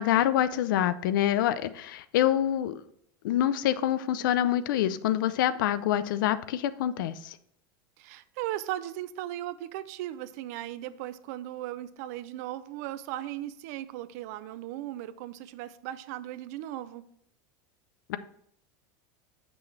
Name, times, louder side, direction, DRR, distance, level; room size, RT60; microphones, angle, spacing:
voice 1, 0.0-2.8 3.2-7.4 18.1-18.2, left 11 dB, 80° left, 14 dB, 0.5 m, -26 dB
voice 2, 8.0-17.0, right 13 dB, 50° right, 15 dB, 0.4 m, -37 dB
7.3 x 6.2 x 3.1 m, 0.68 s
supercardioid pair, 175°, 11 cm